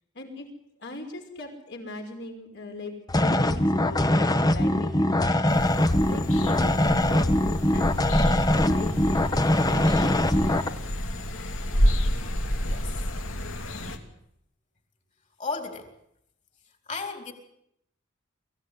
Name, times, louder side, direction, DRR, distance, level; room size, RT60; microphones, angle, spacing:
voice 1, 0.1-0.5 0.8-5.1 6.0-7.3 7.7-10.8, left 2 dB, 60° left, 2 dB, 5.6 m, -40 dB
sound 1, 3.1-10.7, left 1 dB, 20° left, 1.1 m, -22 dB
sound 2, 5.5-14.0, equal, 90° left, 2.8 m, -29 dB
voice 2, 12.6-12.9 13.7-14.0 15.4-15.9 16.9-17.3, left 4 dB, 40° left, 5 dB, 4.1 m, -35 dB
23.5 x 16.0 x 9.7 m, 0.77 s
head